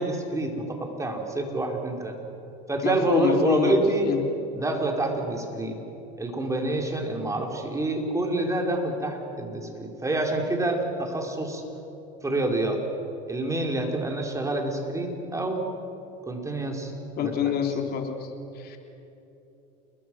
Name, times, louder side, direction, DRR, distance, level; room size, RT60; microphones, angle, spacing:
voice 1, 0.0-2.1 2.7-4.1 4.6-5.8 6.2-11.6 12.2-12.8 13.3-15.6 16.3-16.9 17.2-17.5, right 2 dB, 15° right, 2 dB, 4.6 m, -27 dB
voice 2, 2.8-3.7 4.0-4.3 17.2-18.1 18.6-18.8, left 7 dB, 50° left, 3 dB, 3.5 m, -26 dB
29.0 x 21.5 x 6.4 m, 3.0 s
supercardioid pair, 90°, 20 cm